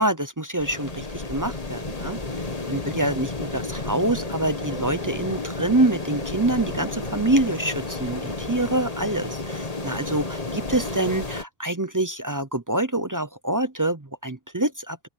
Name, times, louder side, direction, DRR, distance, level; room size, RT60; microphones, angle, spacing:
voice 1, 0.0-2.2 2.7-15.1, right 1 dB, 20° right, 0.5 m, -26 dB
sound 1, 0.6-11.4, left 2 dB, 30° left, 1.8 m, -32 dB
open air
omnidirectional pair, 1.3 m